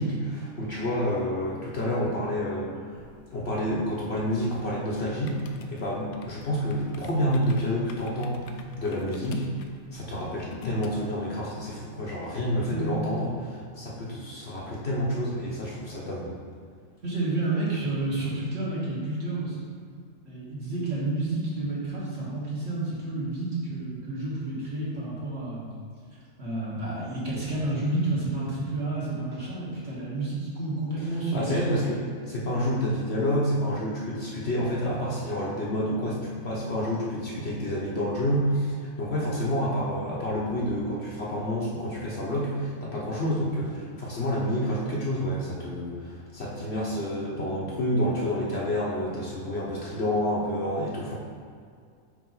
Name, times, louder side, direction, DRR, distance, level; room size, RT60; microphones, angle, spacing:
voice 1, 0.0-2.9 3.3-9.5 9.9-16.3 31.3-32.0 32.3-51.1, equal, 50° left, -5 dB, 1.0 m, -29 dB
sound 1, 2.9-10.9, left 4 dB, 75° left, 1.0 m, -43 dB
voice 2, 12.7-13.0 17.0-19.6 20.2-25.8 26.4-31.8, right 2 dB, 50° right, -7 dB, 1.6 m, -30 dB
4.9 x 4.9 x 3.9 m, 2.2 s
omnidirectional pair, 1.5 m